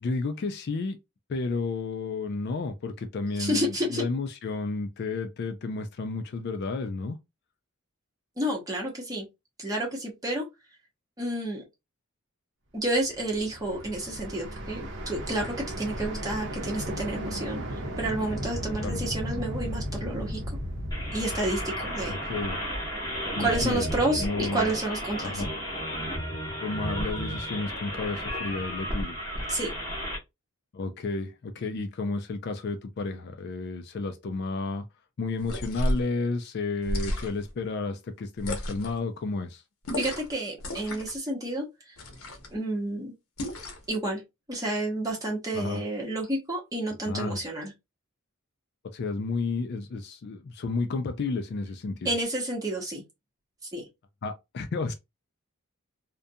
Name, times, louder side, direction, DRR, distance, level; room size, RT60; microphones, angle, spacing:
voice 1, 0.0-1.0 1.3-7.2 18.8-19.0 22.1-22.6 23.4-23.9 24.2-24.7 25.2-25.5 26.6-29.2 30.7-34.8 35.2-39.6 45.5-45.8 47.1-47.4 48.9-52.1 54.2-54.9, left 3 dB, 50° left, 0.3 m, -32 dB
voice 2, 3.4-4.0 8.4-9.3 9.6-10.5 11.2-11.6 12.7-17.6 18.0-20.4 21.1-22.2 23.3-25.4 29.5-29.7 39.9-41.9 42.5-43.1 43.9-44.2 44.5-47.7 52.0-53.0 53.7-53.8, right 1 dB, 15° right, 0.9 m, -30 dB
sound 1, 13.0-23.0, equal, 55° right, 0.7 m, -35 dB
sound 2, 20.9-30.2, equal, 20° left, 0.9 m, -33 dB
sound 3, 35.4-36.1 36.8-37.5 38.4-39.0 39.8-40.3 40.6-41.2 42.0-42.5 43.4-43.9, left 1 dB, 70° left, 0.7 m, -32 dB
2.5 x 2.2 x 2.6 m
head